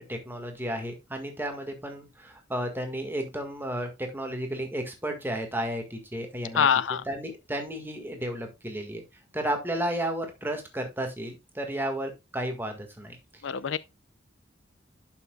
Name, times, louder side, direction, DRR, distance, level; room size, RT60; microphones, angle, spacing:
voice 1, 0.1-6.7 7.0-9.0 9.3-13.2, right 1 dB, 10° right, 1.7 m, -33 dB
voice 2, 6.5-7.0 13.4-13.8, left 7 dB, 80° left, 0.5 m, -24 dB
11.0 x 5.9 x 2.3 m
head